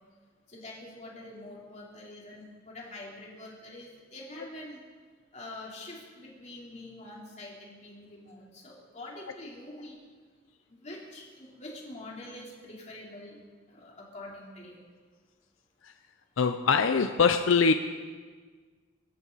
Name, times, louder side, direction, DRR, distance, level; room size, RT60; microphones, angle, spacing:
voice 1, 0.5-4.8 5.3-10.0 10.7-13.4 13.7-14.8, left 1 dB, 35° left, -3 dB, 3.7 m, -45 dB
voice 2, 16.4-17.7, left 5 dB, 85° left, 8 dB, 0.6 m, -23 dB
24.5 x 13.5 x 4.1 m, 1.5 s
head